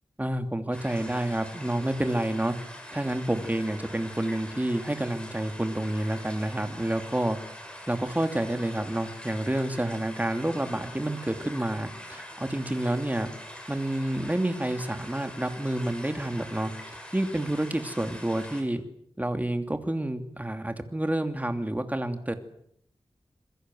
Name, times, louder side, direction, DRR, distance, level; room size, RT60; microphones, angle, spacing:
voice 1, 0.2-2.5 2.9-7.4 7.9-13.3 13.7-16.7 17.1-18.8 19.2-22.3, right 1 dB, 15° right, 7 dB, 2.8 m, -29 dB
sound 1, 0.7-18.6, equal, 10° left, 7.4 m, -44 dB
27.0 x 22.0 x 7.8 m, 0.68 s
wide cardioid pair, 90°, 10 cm